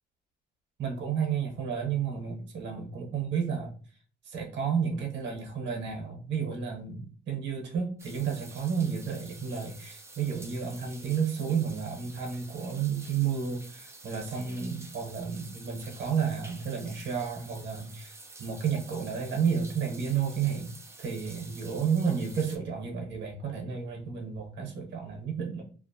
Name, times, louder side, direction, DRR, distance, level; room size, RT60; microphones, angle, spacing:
voice 1, 0.8-3.7 4.2-18.1 18.4-25.6, right 7 dB, 65° right, 1 dB, 0.9 m, -31 dB
sound 1, 8.0-22.6, right 2 dB, 15° right, 0.4 m, -49 dB
2.4 x 2.1 x 2.6 m, 0.42 s
cardioid pair, 90°, 20 cm